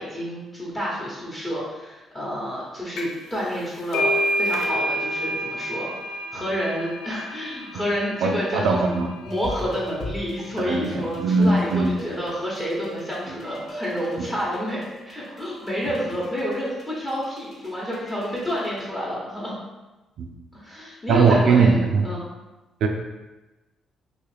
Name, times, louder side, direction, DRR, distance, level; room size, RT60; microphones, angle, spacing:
voice 1, 0.0-19.6 20.5-22.3, equal, 15° left, -7 dB, 0.9 m, -29 dB
sound 1, 3.0-3.3 3.5-10.9, equal, 85° left, 0.4 m, -29 dB
voice 2, 8.2-9.1 10.7-11.9 20.2-20.3 21.1-22.1 22.8-22.9, right 4 dB, 80° right, 3 dB, 0.3 m, -20 dB
sound 2, 9.2-18.8, equal, 50° left, 0.8 m, -38 dB
2.9 x 2.4 x 3.2 m, 1.1 s
cardioid pair, 90°, 0 cm